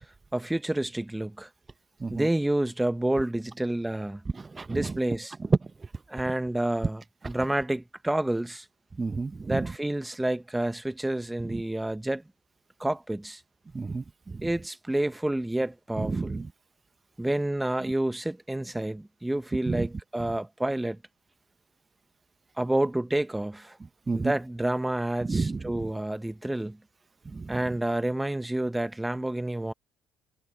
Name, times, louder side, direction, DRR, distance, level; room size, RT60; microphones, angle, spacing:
voice 1, 0.3-1.5 2.1-4.2 4.7-5.3 6.1-7.0 7.3-8.7 9.5-12.2 12.8-13.4 14.4-16.4 17.2-21.0 22.6-23.8 24.1-26.8 27.5-29.7, right 1 dB, 10° right, 1.2 m, -29 dB
voice 2, 4.3-5.0 5.4-5.9 9.0-9.7 11.4-11.6 13.7-14.5 16.0-16.5 17.8-17.9 19.7-19.9 24.1-24.3 25.2-25.9 27.2-27.6, right 4 dB, 25° right, 1.3 m, -30 dB
hypercardioid pair, 55°, 0 cm